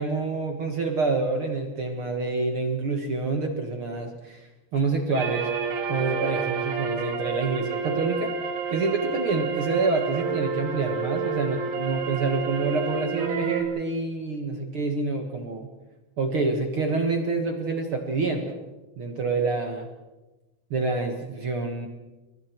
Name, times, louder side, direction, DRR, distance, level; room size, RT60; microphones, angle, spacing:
voice 1, 0.0-4.4 4.7-5.5 5.9-8.3 8.7-15.7 16.2-18.6 19.0-19.9 20.7-21.9, right 3 dB, 70° right, 4 dB, 1.2 m, -27 dB
sound 1, 5.1-13.6, right 5 dB, 90° right, 4.9 m, -29 dB
29.0 x 23.0 x 4.6 m, 1.1 s
omnidirectional pair, 5.2 m